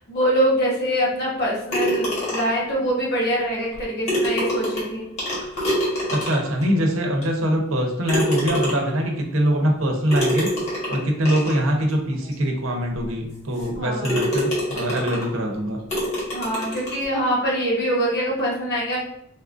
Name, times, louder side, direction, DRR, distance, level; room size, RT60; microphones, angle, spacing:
voice 1, 0.0-5.1 13.7-14.2 16.3-19.0, equal, 55° left, -4 dB, 1.2 m, -24 dB
sound 1, 1.7-2.7 3.7-3.8 4.1-6.6 7.2-7.3 8.1-9.0 10.1-11.6 12.3-12.4 12.9-13.0 13.6-13.7 14.0-15.3 15.9-17.0, equal, 35° left, 1.2 m, -25 dB
voice 2, 6.1-10.5 10.9-15.8, equal, 85° right, 2 dB, 0.7 m, -23 dB
4.1 x 2.4 x 2.5 m, 0.73 s
head